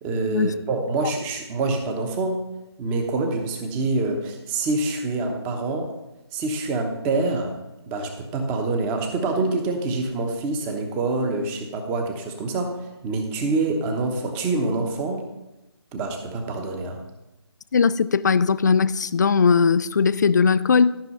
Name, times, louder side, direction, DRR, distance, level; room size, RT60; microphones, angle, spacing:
voice 1, 0.0-2.4 2.8-5.9 6.3-7.5 7.9-15.2 15.9-17.0, right 3 dB, 10° right, 0.9 m, -26 dB
voice 2, 17.7-21.0, left 5 dB, 40° left, 0.4 m, -19 dB
13.0 x 6.1 x 5.5 m
figure-of-eight pair, 155°, 14 cm